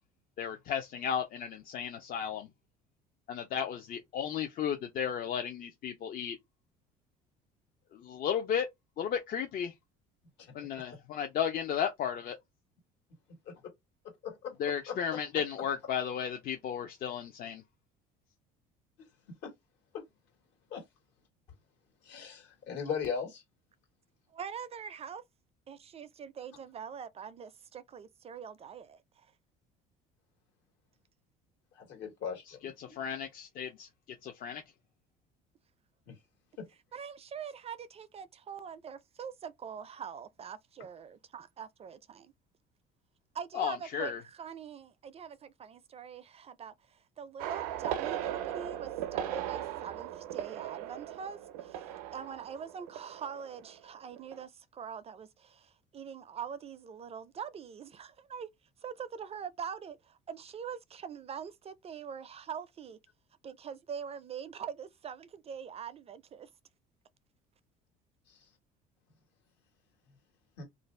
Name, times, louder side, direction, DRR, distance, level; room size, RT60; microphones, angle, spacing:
voice 1, 0.4-2.5 3.3-6.4 7.9-8.7 9.0-9.7 10.5-12.3 14.6-17.6 32.5-33.9 34.2-34.6 43.5-44.2, left 8 dB, 50° left, 0.5 m, -34 dB
voice 2, 22.0-23.4 31.7-33.0 36.1-36.2 68.3-68.4 70.6-70.7, left 6 dB, 75° left, 1.5 m, -38 dB
voice 3, 24.3-25.2 25.7-29.3 36.9-42.3 43.3-58.5 58.8-63.0 63.4-66.5, right 7 dB, 35° right, 0.4 m, -43 dB
sound 1, 47.4-53.8 54.1-54.4, right 11 dB, 85° right, 0.5 m, -38 dB
2.6 x 2.2 x 3.1 m
supercardioid pair, 80°, 18 cm